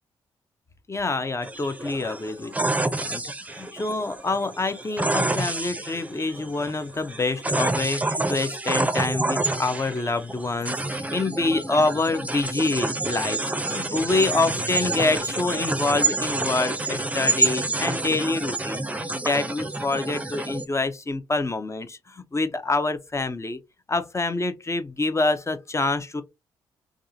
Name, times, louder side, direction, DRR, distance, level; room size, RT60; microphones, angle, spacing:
voice 1, 0.9-3.2 3.5-18.8 19.1-23.6 23.9-26.2, left 3 dB, 25° left, 0.7 m, -26 dB
sound 1, 1.4-20.7, right 2 dB, 10° right, 0.6 m, -28 dB
3.6 x 2.4 x 2.7 m
hypercardioid pair, 40°, 12 cm